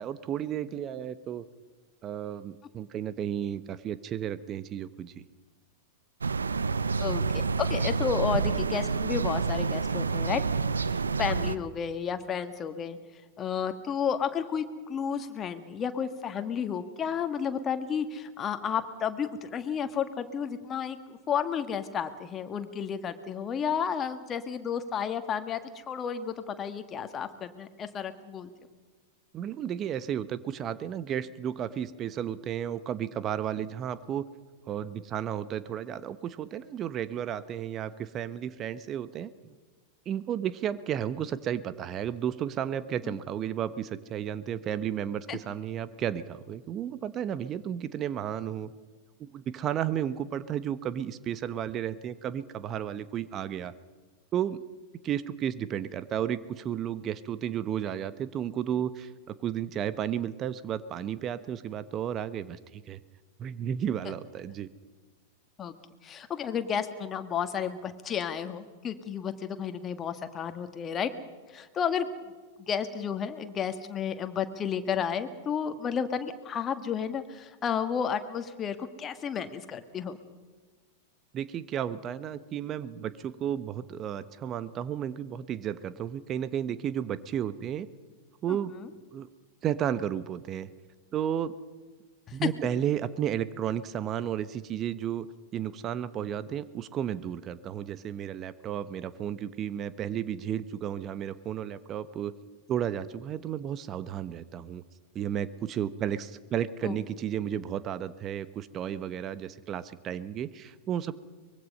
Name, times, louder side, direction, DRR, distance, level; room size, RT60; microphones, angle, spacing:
voice 1, 0.0-1.4 2.0-5.2 29.3-34.2 34.7-39.5 40.1-48.7 49.2-53.7 54.3-54.6 55.0-63.0 63.4-64.7 81.3-87.9 88.4-89.3 89.6-90.7 91.1-91.5 92.3-95.3 95.5-102.3 102.7-104.8 105.1-111.1, right 9 dB, 30° right, 15 dB, 1.0 m, -33 dB
sound 1, 6.2-11.6, right 4 dB, 80° right, 0.7 m, -28 dB
voice 2, 7.0-10.4 10.9-13.0 13.4-25.6 25.9-28.5 43.0-43.2 45.3-45.4 65.6-65.7 66.0-71.1 71.5-72.1 72.6-80.2 88.7-88.9 92.3-92.5 106.8-107.0, left 7 dB, 25° left, 8 dB, 1.9 m, -32 dB
24.0 x 22.0 x 5.6 m, 1.4 s
figure-of-eight pair, 95°, 0 cm